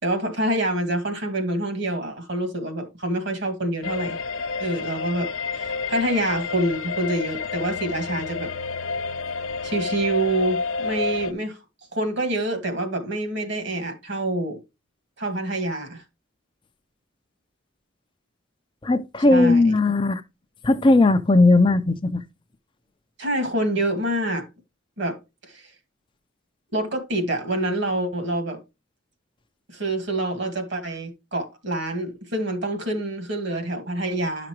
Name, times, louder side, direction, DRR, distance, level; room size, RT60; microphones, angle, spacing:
voice 1, 0.0-4.2 4.6-8.5 9.6-11.6 11.9-14.6 15.2-16.0 19.3-19.6 23.2-24.5 25.0-25.2 25.4-25.7 26.7-28.6 29.7-34.5, right 1 dB, 55° right, 2.2 m, -26 dB
sound 1, 3.8-11.3, left 4 dB, 80° left, 0.9 m, -29 dB
voice 2, 18.8-20.2 20.6-22.2, left 2 dB, 25° left, 0.5 m, -17 dB
11.5 x 5.9 x 3.0 m
head